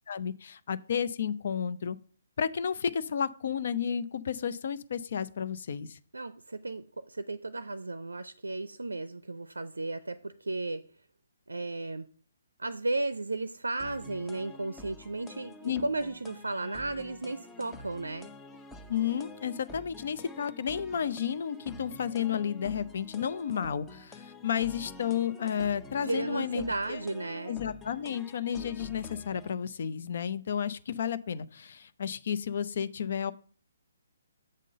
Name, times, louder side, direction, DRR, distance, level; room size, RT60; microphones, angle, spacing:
voice 1, 0.1-2.0 2.4-6.0 15.6-15.8 18.9-27.0 27.5-33.3, left 8 dB, 50° left, 14 dB, 0.5 m, -32 dB
voice 2, 6.1-10.8 11.5-12.1 12.6-18.3 26.0-27.6, right 2 dB, 75° right, 13 dB, 0.5 m, -34 dB
sound 1, 13.8-29.5, left 2 dB, 10° left, 0.6 m, -49 dB
7.5 x 3.8 x 6.4 m, 0.42 s
figure-of-eight pair, 135°, 0 cm